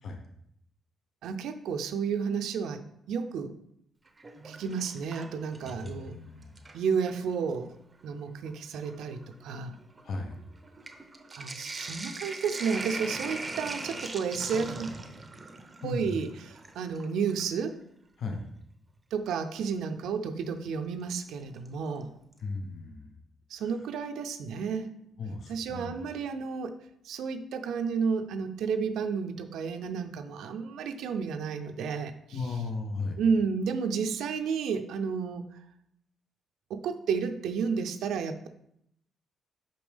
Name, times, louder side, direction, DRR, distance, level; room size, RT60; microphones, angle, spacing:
voice 1, 1.2-2.8 3.1-3.5 4.4-6.2 6.7-7.7 8.0-9.7 11.3-14.9 15.8-17.8 19.1-22.1 23.5-24.9 25.5-26.7 27.0-32.5 33.2-35.4 36.7-38.5, right 6 dB, 80° right, 8 dB, 0.4 m, -31 dB
Sink (filling or washing), 4.1-6.1 6.4-7.2 8.0-8.1 8.4-17.5 19.3-19.4 21.2-21.7 22.0-22.1 22.3-22.4, right 3 dB, 25° right, 0.6 m, -41 dB
voice 2, 5.6-6.6 10.0-10.4 15.8-16.2 18.2-18.5 22.4-23.1 25.2-25.9 32.3-33.2, left 3 dB, 55° left, 3 dB, 0.8 m, -36 dB
5.6 x 5.1 x 3.4 m, 0.74 s
cardioid pair, 90°, 0 cm